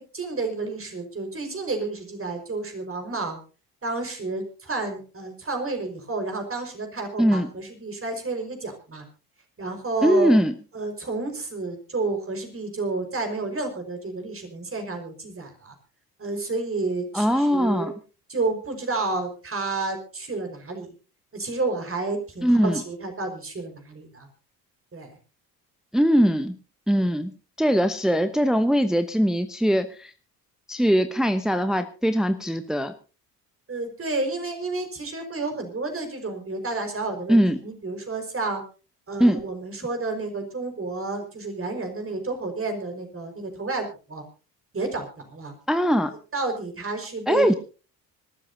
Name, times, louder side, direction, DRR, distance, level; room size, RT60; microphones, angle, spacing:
voice 1, 0.0-3.4 3.8-9.0 9.6-10.3 10.7-15.8 16.2-17.9 18.3-20.9 21.3-24.3 24.9-25.2 33.7-38.6 39.1-44.2 44.7-45.5 46.3-47.6, right 3 dB, 25° right, 5 dB, 5.2 m, -30 dB
voice 2, 10.0-10.5 17.1-17.9 22.4-22.8 25.9-26.5 26.9-27.3 27.6-30.1 30.7-32.9 37.3-37.6 39.2-39.4 45.7-46.1 47.3-47.5, equal, ahead, 9 dB, 1.0 m, -21 dB
25.5 x 13.0 x 2.8 m, 0.34 s
figure-of-eight pair, 55°, 48 cm